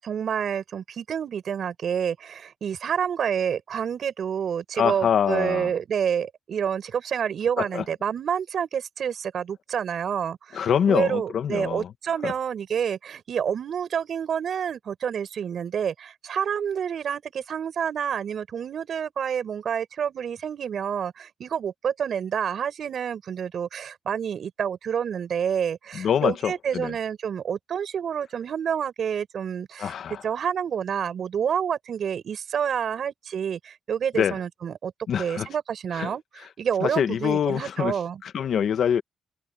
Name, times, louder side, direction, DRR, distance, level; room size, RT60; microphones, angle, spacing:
voice 1, 0.0-30.0 30.2-34.9 35.2-38.2, right 8 dB, 70° right, 6.6 m, -28 dB
voice 2, 4.8-5.7 7.6-7.8 10.5-11.9 12.2-12.3 25.9-26.9 29.8-30.2 34.2-34.3 35.1-35.5 35.9-36.1 36.8-37.9 38.2-39.0, left 8 dB, 75° left, 1.4 m, -25 dB
open air
cardioid pair, 75°, 0 cm